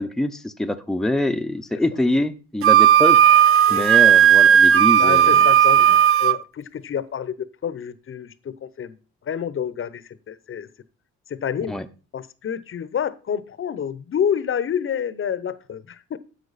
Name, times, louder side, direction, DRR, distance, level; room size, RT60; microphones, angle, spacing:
voice 1, 0.0-3.2 3.7-5.5 11.7-11.8, left 1 dB, ahead, 0.7 m, -24 dB
Wind instrument woodwind instrument, 2.6-6.4, right 9 dB, 45° right, 0.5 m, -14 dB
voice 2, 5.0-9.0 9.3-10.7 11.3-11.8 12.1-16.2, left 8 dB, 45° left, 0.8 m, -28 dB
10.5 x 7.5 x 4.1 m
cardioid pair, 90°, 30 cm